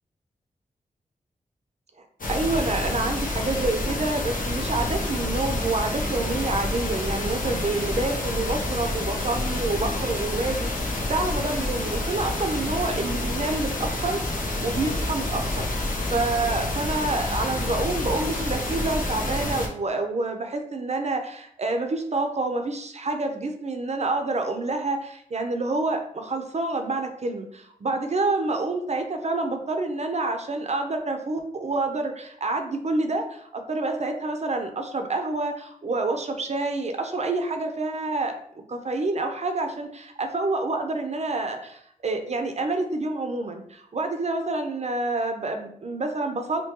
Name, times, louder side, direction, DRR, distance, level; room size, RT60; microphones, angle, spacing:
sound 1, 2.2-19.7, left 2 dB, 65° left, 0.9 m, -28 dB
voice 1, 2.3-14.2 14.6-15.7 16.1-38.3 38.7-46.6, right 2 dB, 50° right, 5 dB, 0.7 m, -28 dB
5.9 x 2.2 x 3.0 m, 0.68 s
cardioid pair, 45°, 15 cm